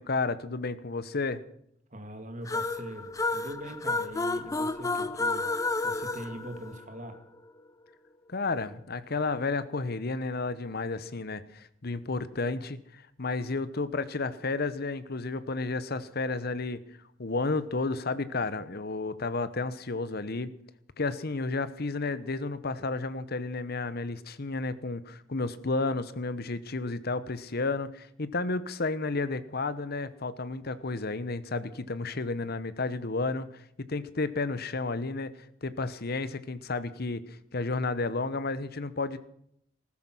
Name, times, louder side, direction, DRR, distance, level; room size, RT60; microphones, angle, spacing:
voice 1, 0.0-1.4 8.3-16.8 17.2-20.5 21.0-35.3 35.6-39.2, left 3 dB, 50° left, 15 dB, 1.0 m, -32 dB
voice 2, 1.9-5.5 5.8-7.2, right 1 dB, 40° right, 7 dB, 2.2 m, -42 dB
sound 1, 2.5-7.2, left 3 dB, 15° left, 0.6 m, -31 dB
15.5 x 13.5 x 6.2 m, 0.70 s
head